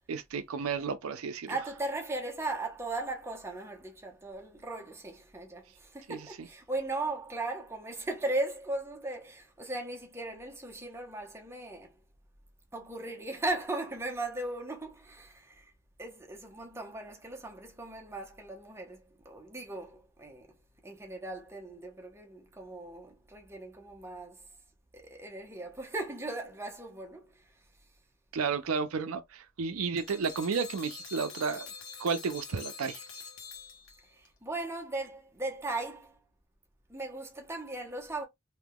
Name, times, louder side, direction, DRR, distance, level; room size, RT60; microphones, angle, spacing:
voice 1, 0.1-1.6 6.1-6.2 28.3-31.7 32.0-33.0, right 5 dB, 90° right, 0.5 m, -32 dB
voice 2, 1.5-12.0 12.7-15.7 16.0-20.5 20.8-24.5 24.9-27.6 34.0-36.2 36.9-38.3, right 2 dB, 10° right, 0.8 m, -38 dB
sound 1, 30.0-34.3, left 5 dB, 85° left, 1.2 m, -45 dB
3.5 x 2.7 x 2.2 m
head